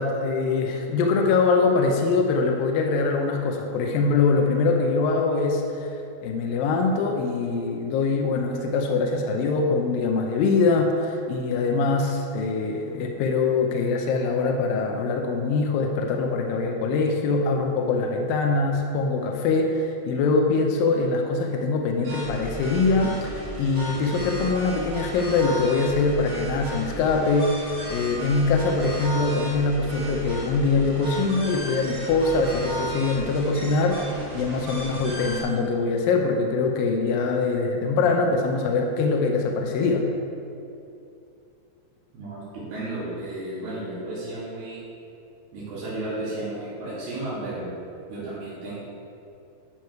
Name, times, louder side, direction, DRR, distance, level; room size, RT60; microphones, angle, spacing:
voice 1, 0.0-5.9 6.2-34.1 34.3-40.1, left 3 dB, 80° left, 2 dB, 2.2 m, -23 dB
sound 1, 22.0-35.4, equal, 75° right, 3.9 m, -35 dB
voice 2, 42.1-44.8 45.5-47.7 48.1-48.8, right 2 dB, 90° right, -9 dB, 3.9 m, -33 dB
11.5 x 4.7 x 4.6 m, 2.6 s
omnidirectional pair, 4.4 m